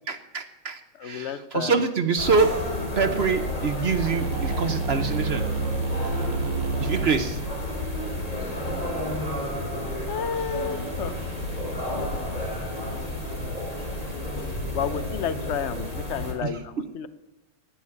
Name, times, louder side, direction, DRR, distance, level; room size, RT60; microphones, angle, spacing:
voice 1, 0.1-2.6 3.0-5.5 6.8-7.4 16.4-16.5, right 5 dB, 50° right, 10 dB, 0.7 m, -25 dB
voice 2, 1.0-1.8 10.1-11.1 14.7-17.1, left 7 dB, 55° left, 13 dB, 0.8 m, -31 dB
sound 1, 2.2-16.3, left 1 dB, 20° left, 3.0 m, -31 dB
sound 2, 4.1-10.0, right 4 dB, 90° right, 1.9 m, -31 dB
18.0 x 7.3 x 9.7 m, 0.98 s
omnidirectional pair, 2.2 m